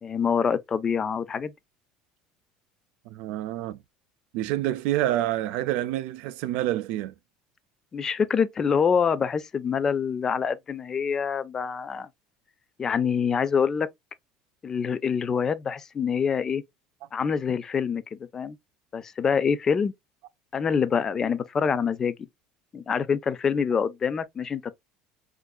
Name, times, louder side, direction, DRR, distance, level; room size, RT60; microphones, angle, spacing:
voice 1, 0.0-1.5 7.9-12.1 12.8-13.9 14.6-16.6 17.1-18.6 18.9-19.9 20.5-22.1 22.7-24.6, left 6 dB, 25° left, 0.3 m, -25 dB
voice 2, 3.1-3.8 4.3-7.1, right 14 dB, 70° right, 0.4 m, -27 dB
4.5 x 2.5 x 2.2 m
cardioid pair, 140°, 2 cm